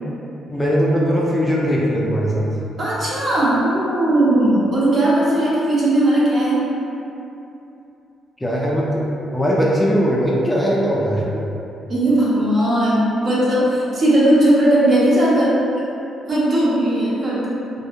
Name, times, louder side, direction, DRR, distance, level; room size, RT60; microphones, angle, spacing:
voice 1, 0.5-2.5 8.4-9.0 9.3-11.2, equal, 10° left, -5 dB, 0.3 m, -19 dB
voice 2, 2.8-6.6 11.9-15.6 16.3-17.6, right 1 dB, 50° right, -7 dB, 0.7 m, -17 dB
2.6 x 2.0 x 2.5 m, 2.9 s
cardioid pair, 90°, 0 cm